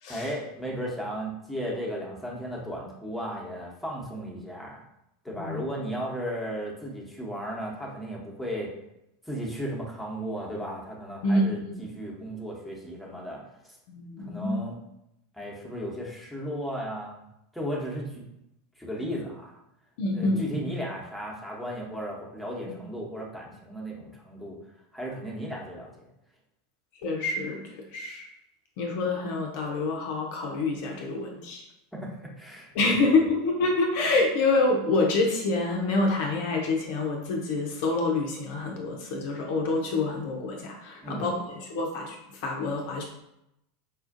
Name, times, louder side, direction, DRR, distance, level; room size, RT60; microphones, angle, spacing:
voice 1, 0.1-4.9 5.2-8.8 9.2-13.8 14.3-14.8 15.3-17.2 17.5-18.2 18.8-19.6 20.1-24.6 24.9-26.1 31.9-33.3 41.0-41.2, equal, ahead, -4 dB, 0.9 m, -35 dB
voice 2, 5.3-5.6 11.2-11.7 13.9-14.6 20.0-20.6 22.7-22.8 27.0-28.3 28.8-31.6 32.7-43.0, left 3 dB, 55° left, 1 dB, 0.5 m, -27 dB
4.3 x 2.4 x 2.5 m, 0.83 s
figure-of-eight pair, 80°, 0 cm